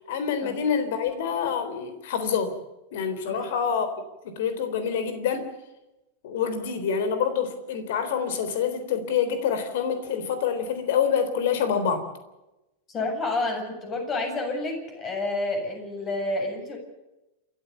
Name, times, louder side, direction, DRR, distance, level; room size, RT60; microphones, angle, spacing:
voice 1, 0.0-2.5 2.9-3.9 4.2-5.5 6.2-12.1, left 7 dB, 55° left, 10 dB, 3.7 m, -26 dB
voice 2, 12.9-16.8, left 2 dB, 25° left, 4 dB, 7.6 m, -29 dB
29.0 x 13.5 x 6.9 m, 0.97 s
figure-of-eight pair, 90°, 0 cm